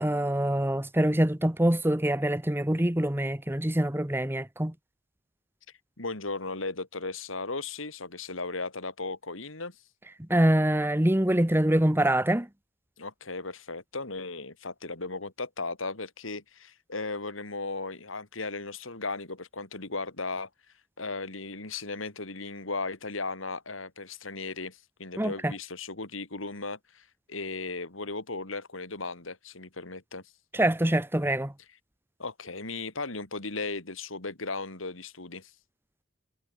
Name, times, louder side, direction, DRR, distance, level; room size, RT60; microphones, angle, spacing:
voice 1, 0.0-4.7 10.3-12.5 25.2-25.5 30.5-31.5, right 1 dB, 10° right, 1.2 m, -25 dB
voice 2, 6.0-9.8 13.0-20.5 21.0-30.2 32.2-35.5, left 3 dB, 75° left, 3.4 m, -36 dB
head